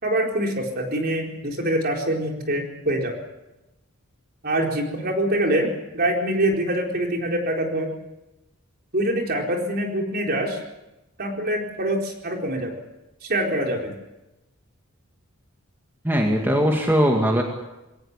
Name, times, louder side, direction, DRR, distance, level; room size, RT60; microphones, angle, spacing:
voice 1, 0.0-3.2 4.4-5.7 5.9-7.9 8.9-10.6 11.2-12.7 13.2-13.9, right 1 dB, 45° right, 1 dB, 4.4 m, -24 dB
voice 2, 16.0-17.4, equal, 10° right, 1 dB, 2.2 m, -20 dB
22.5 x 17.5 x 8.4 m, 0.98 s
head